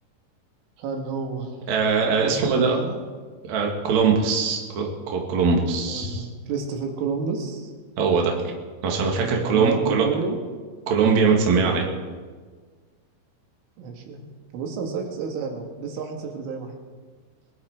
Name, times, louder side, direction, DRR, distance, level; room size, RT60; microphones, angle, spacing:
voice 1, 0.8-1.7 2.1-3.0 5.9-7.7 9.2-10.4 13.8-16.7, right 5 dB, 85° right, 3 dB, 4.3 m, -30 dB
voice 2, 1.7-2.8 3.5-6.3 8.0-8.3 8.8-10.1 10.9-11.8, right 5 dB, 50° right, 0 dB, 2.5 m, -21 dB
22.0 x 11.0 x 5.0 m, 1.5 s
omnidirectional pair, 5.5 m